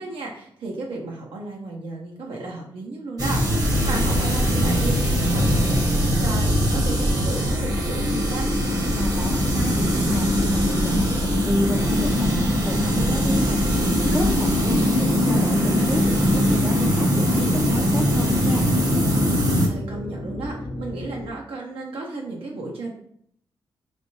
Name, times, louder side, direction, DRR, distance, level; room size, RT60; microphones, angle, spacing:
voice 1, 0.0-8.5 14.6-15.6 19.7-22.9, right 3 dB, 80° right, -2 dB, 0.8 m, -33 dB
sound 1, 3.2-19.7, equal, 45° right, 0.9 m, -21 dB
sound 2, 3.8-21.3, left 2 dB, 75° left, 0.7 m, -33 dB
voice 2, 8.9-13.6 14.1-18.7, equal, ahead, -1 dB, 0.4 m, -30 dB
4.3 x 3.4 x 2.7 m, 0.66 s
cardioid pair, 100°, 9 cm